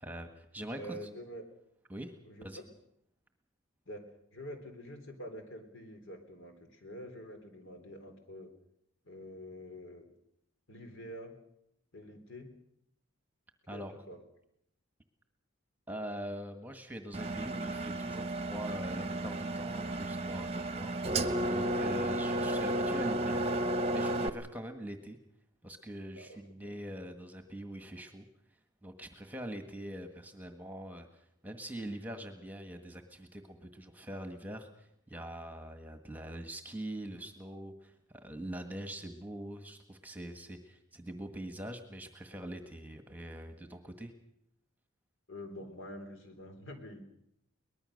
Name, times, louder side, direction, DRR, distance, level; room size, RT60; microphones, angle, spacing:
voice 1, 0.0-1.1 1.9-2.1 2.4-2.6 13.7-13.9 15.9-25.2 25.6-28.3 28.8-44.1, right 1 dB, 10° right, 6 dB, 1.5 m, -43 dB
voice 2, 0.7-1.4 2.2-2.7 3.9-4.0 4.3-8.5 9.0-10.1 10.7-11.3 11.9-12.5 13.7-14.2 26.1-26.7 45.3-47.1, equal, 65° left, 6 dB, 3.8 m, -46 dB
Engine, 17.1-24.3, right 1 dB, 30° right, 1.0 m, -33 dB
23.0 x 20.0 x 6.6 m, 0.78 s
head